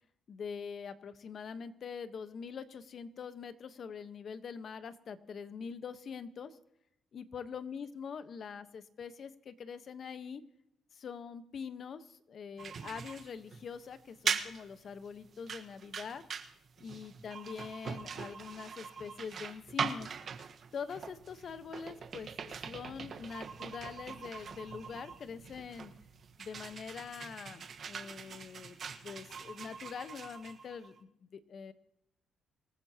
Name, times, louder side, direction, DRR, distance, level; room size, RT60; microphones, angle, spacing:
voice 1, 0.3-6.6 7.1-10.4 10.9-16.2 16.8-20.2 20.7-25.9 26.4-28.8 29.0-31.7, left 6 dB, 55° left, 11 dB, 1.2 m, -44 dB
sound 1, 12.6-31.0, right 6 dB, 55° right, 1.4 m, -42 dB
sound 2, 21.0-26.4, right 5 dB, 75° right, 1.4 m, -57 dB
25.5 x 14.5 x 3.0 m, 0.78 s
cardioid pair, 90°, 0 cm